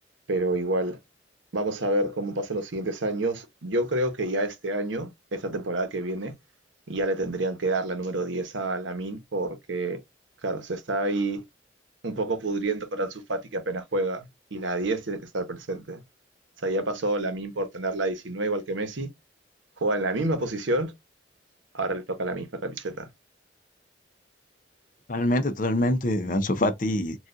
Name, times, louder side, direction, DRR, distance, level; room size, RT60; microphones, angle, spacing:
voice 1, 0.3-1.0 1.5-6.3 6.9-10.0 10.4-11.4 12.0-16.0 16.6-19.1 19.8-20.9 21.7-23.1, right 2 dB, 80° right, 0.9 m, -28 dB
voice 2, 25.1-27.2, left 1 dB, 45° left, 0.6 m, -25 dB
4.1 x 2.4 x 2.5 m
head